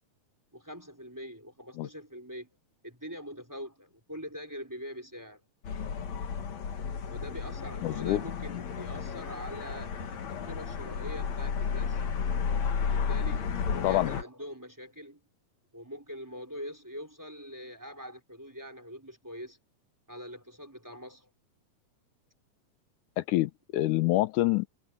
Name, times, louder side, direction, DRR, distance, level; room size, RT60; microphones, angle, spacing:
voice 1, 0.5-2.5 2.8-5.4 7.1-12.0 12.8-13.6 13.8-15.2 15.7-19.6 20.1-21.3, equal, 5° right, 3.6 m, -43 dB
sound 1, 5.6-14.2, left 6 dB, 60° left, 3.1 m, -33 dB
voice 2, 7.8-8.2 13.8-14.2 23.2-24.7, left 17 dB, 85° left, 2.1 m, -26 dB
omnidirectional pair, 3.6 m